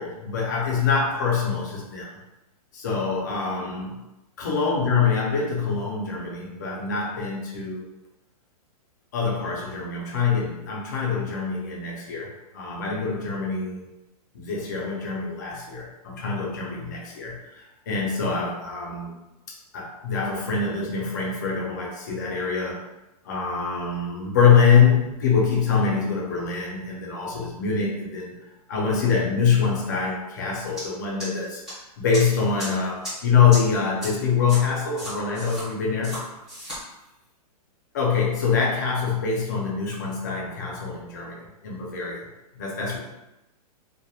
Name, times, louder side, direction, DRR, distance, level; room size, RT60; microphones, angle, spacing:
voice 1, 0.0-2.1 2.7-4.0 4.4-7.8 9.1-13.8 14.3-19.1 19.5-22.8 23.2-28.3 28.7-31.6 32.0-36.3 37.9-42.3 42.5-43.0, left 6 dB, 30° left, -3 dB, 0.4 m, -24 dB
sound 1, 30.8-30.9 31.2-31.7 32.1-32.2 32.6-32.7 33.0-33.1 33.5-33.6 34.0-34.1 34.5-34.6 35.0-35.6 36.0-36.2 36.5-36.8, equal, ahead, 0.7 m, -34 dB
2.8 x 2.0 x 2.2 m, 0.97 s
hypercardioid pair, 180°, 20 cm